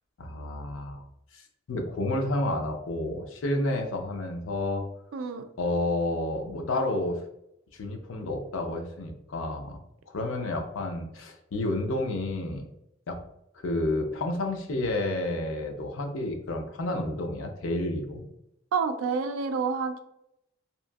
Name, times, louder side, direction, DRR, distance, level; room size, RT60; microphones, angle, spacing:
voice 1, 0.2-1.0 1.3-1.4 1.7-4.8 5.6-7.2 7.7-9.8 10.1-12.6 13.1-13.2 13.6-18.3, left 2 dB, 80° left, 4 dB, 0.5 m, -30 dB
voice 2, 5.1-5.5 18.7-20.0, right 5 dB, 80° right, 8 dB, 0.4 m, -28 dB
2.8 x 2.5 x 2.2 m, 0.81 s
head